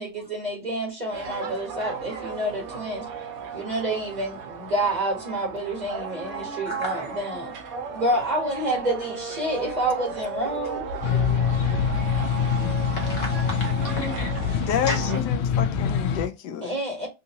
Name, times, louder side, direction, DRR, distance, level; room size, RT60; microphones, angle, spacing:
voice 1, 0.0-3.1 3.5-7.5 7.9-10.8 16.6-17.1, right 1 dB, 25° right, 1.0 m, -28 dB
sound 1, 1.1-15.2, right 3 dB, 60° right, 1.0 m, -34 dB
voice 2, 6.6-7.0 12.8-14.5 14.9-15.1, left 2 dB, 50° left, 1.2 m, -33 dB
sound 2, 11.0-16.3, left 7 dB, 90° left, 1.4 m, -25 dB
voice 3, 14.7-16.7, left 9 dB, 75° left, 1.0 m, -29 dB
3.8 x 2.6 x 2.8 m
omnidirectional pair, 2.1 m